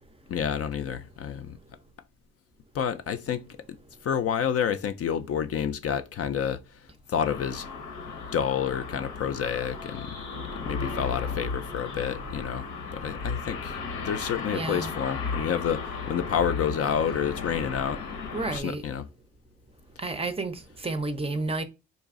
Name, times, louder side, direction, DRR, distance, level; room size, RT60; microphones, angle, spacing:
voice 1, 0.3-1.6 2.7-3.4 4.0-6.8 7.1-7.7 8.3-10.2 10.5-13.7 14.0-18.0 18.5-19.1, left 8 dB, 50° left, 0.5 m, -29 dB
sound 1, 7.2-18.6, left 4 dB, 85° left, 1.0 m, -35 dB
voice 2, 14.5-14.9 18.3-18.8 20.0-21.6, right 3 dB, 20° right, 0.5 m, -31 dB
3.9 x 2.4 x 3.6 m
cardioid pair, 90°, 30 cm